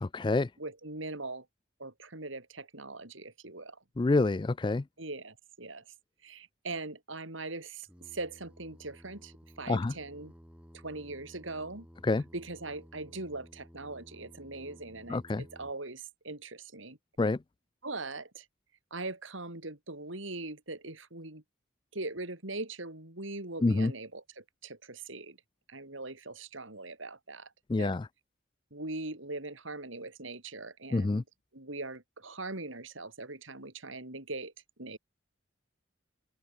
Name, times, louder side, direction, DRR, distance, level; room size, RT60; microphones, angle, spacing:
voice 1, 0.0-0.5 4.0-4.8 9.7-9.9 12.0-12.2 15.1-15.4 17.2-17.4 23.6-23.9 27.7-28.1 30.9-31.2, left 3 dB, 25° left, 0.3 m, -27 dB
voice 2, 0.6-1.4 1.8-3.8 5.0-5.8 6.2-7.9 8.1-10.3 10.8-11.9 12.3-17.0 17.8-18.4 18.9-21.4 21.9-25.4 25.7-27.5 27.8-28.0 28.7-31.2 31.5-34.5 34.8-35.0, right 2 dB, 75° right, 4.4 m, -41 dB
Singing, 7.8-15.7, equal, 5° right, 7.8 m, -55 dB
open air
head